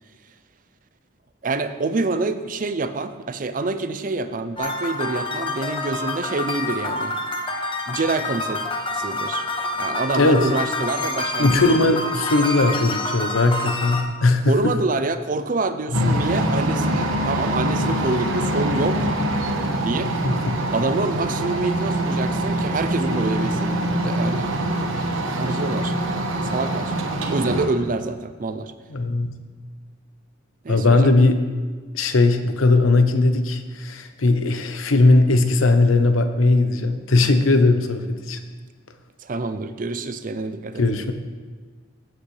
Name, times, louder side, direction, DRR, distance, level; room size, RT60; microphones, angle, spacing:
voice 1, 1.4-7.2 7.9-8.7 8.9-9.4 9.8-11.6 14.5-19.1 19.8-20.2 20.7-24.5 25.4-25.9 26.4-26.9 27.3-28.7 30.6-31.1 39.2-40.8, right 3 dB, 40° right, 11 dB, 0.5 m, -26 dB
sound 1, 4.6-14.0, left 2 dB, 25° left, 0.8 m, -27 dB
voice 2, 10.1-10.5 11.4-14.6 15.9-16.2 20.2-20.6 28.9-29.3 30.7-31.3 31.9-38.4 40.8-41.1, left 2 dB, 85° left, 8 dB, 0.8 m, -18 dB
sound 2, 15.9-27.7, right 1 dB, 90° right, 1.1 m, -24 dB
Bass guitar, 23.1-26.8, right 2 dB, 75° right, 0.8 m, -37 dB
15.0 x 7.7 x 3.3 m, 1.5 s
head